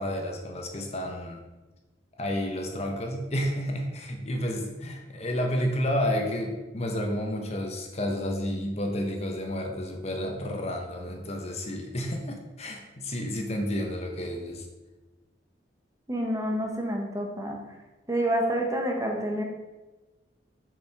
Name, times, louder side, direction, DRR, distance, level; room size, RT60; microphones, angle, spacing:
voice 1, 0.0-1.4 2.2-14.6, equal, 35° left, 2 dB, 1.1 m, -31 dB
voice 2, 16.1-17.6 18.1-19.4, right 1 dB, 15° right, 1 dB, 1.0 m, -28 dB
7.1 x 5.0 x 5.9 m, 1.1 s
head